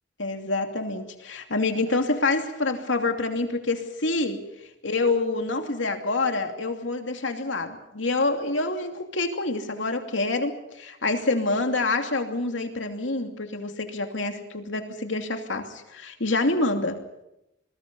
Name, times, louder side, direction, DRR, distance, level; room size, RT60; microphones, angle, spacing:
voice 1, 0.2-4.4 4.8-17.0, left 2 dB, 90° left, 5 dB, 2.8 m, -27 dB
26.5 x 21.5 x 5.5 m, 0.85 s
head